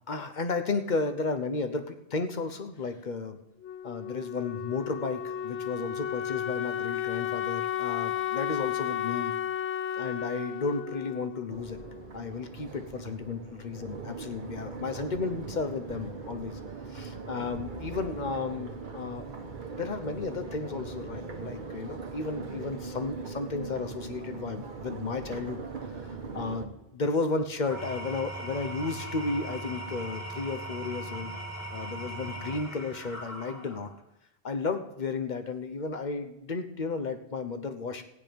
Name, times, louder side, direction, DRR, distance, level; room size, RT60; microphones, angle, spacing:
voice 1, 0.1-3.4 3.8-9.3 9.9-11.8 12.1-13.4 13.6-13.8 14.0-16.6 16.9-19.4 19.7-25.7 26.0-31.3 31.7-33.9 34.4-38.0, left 4 dB, 45° left, 8 dB, 1.0 m, -33 dB
Wind instrument woodwind instrument, 3.6-12.3, left 9 dB, 85° left, 1.0 m, -33 dB
Crowd, 11.5-26.6, right 4 dB, 50° right, 1.2 m, -40 dB
Engine / Tools, 27.5-34.0, right 1 dB, 15° left, 2.1 m, -39 dB
15.0 x 9.2 x 5.2 m, 0.90 s
omnidirectional pair, 1.1 m